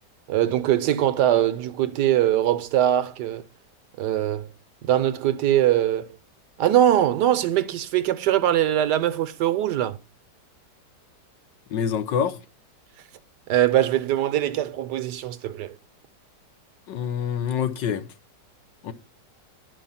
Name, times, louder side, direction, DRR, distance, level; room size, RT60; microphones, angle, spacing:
voice 1, 0.3-3.5 4.0-4.5 4.8-6.1 6.6-10.0 13.5-15.8, right 12 dB, 75° right, 1.3 m, -22 dB
voice 2, 11.7-12.4 16.9-18.0 18.8-18.9, left 8 dB, 80° left, 1.7 m, -26 dB
10.5 x 6.0 x 5.6 m
omnidirectional pair, 1.9 m